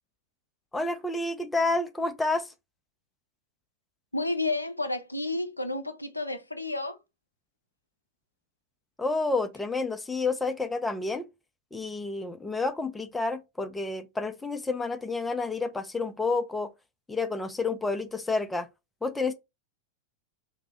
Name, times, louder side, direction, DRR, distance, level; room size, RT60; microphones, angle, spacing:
voice 1, 0.7-2.5 9.0-11.3 11.7-16.7 17.1-18.7 19.0-19.3, left 3 dB, 10° left, 0.4 m, -29 dB
voice 2, 4.1-7.0, left 2 dB, 85° left, 0.4 m, -31 dB
2.6 x 2.0 x 3.8 m
figure-of-eight pair, 90°, 0 cm